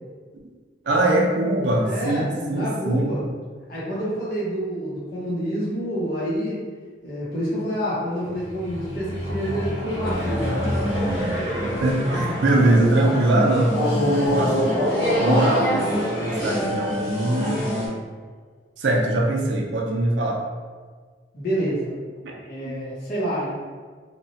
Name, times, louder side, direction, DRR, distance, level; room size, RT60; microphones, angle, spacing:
voice 1, 0.8-3.2 11.8-14.8 15.2-17.6 18.8-20.4 22.2-22.3 22.6-22.8, right 1 dB, 75° right, -1 dB, 0.5 m, -22 dB
voice 2, 1.8-3.2 3.7-6.6 7.0-10.5 21.3-21.9 22.5-23.5, equal, 55° left, -8 dB, 0.7 m, -28 dB
sound 1, 8.2-12.9 13.7-17.3, equal, 75° left, 1.0 m, -27 dB
sound 2, 10.0-17.9, equal, 15° left, 0.9 m, -27 dB
2.9 x 2.1 x 2.6 m, 1.5 s
head